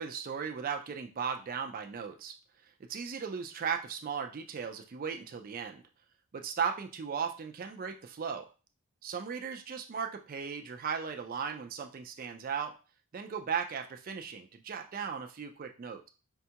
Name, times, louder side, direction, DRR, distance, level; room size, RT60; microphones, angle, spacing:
voice 1, 0.0-2.3 2.9-5.8 6.3-8.5 9.0-12.8 13.1-16.1, right 6 dB, 40° right, 5 dB, 0.4 m, -36 dB
5.2 x 2.3 x 2.8 m, 0.33 s
head